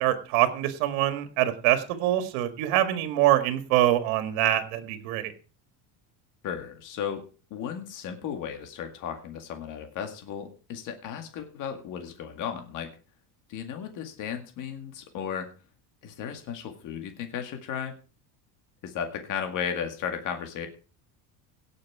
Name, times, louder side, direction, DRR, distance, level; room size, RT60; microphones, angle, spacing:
voice 1, 0.0-5.3, right 13 dB, 85° right, 8 dB, 1.8 m, -24 dB
voice 2, 6.4-7.2 7.5-12.9 13.5-15.5 16.0-17.9 18.8-20.7, left 8 dB, 45° left, 5 dB, 2.0 m, -35 dB
17.0 x 6.6 x 4.7 m, 0.36 s
cardioid pair, 165°, 43 cm